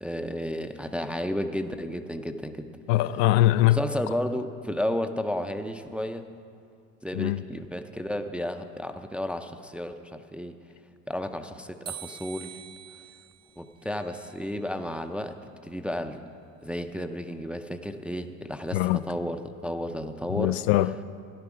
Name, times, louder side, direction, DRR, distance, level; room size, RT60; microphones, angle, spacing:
voice 1, 0.0-2.8 3.6-6.2 7.0-10.6 11.1-12.6 13.6-15.4 15.6-16.2 16.6-18.8 19.1-20.6, left 1 dB, 5° right, 0.4 m, -32 dB
voice 2, 2.9-3.8 7.1-7.4 18.7-19.0 20.3-21.0, left 15 dB, 55° left, 0.5 m, -22 dB
sound 1, 11.9-14.9, right 10 dB, 35° right, 1.0 m, -45 dB
13.5 x 11.5 x 5.0 m
hypercardioid pair, 75°, 43 cm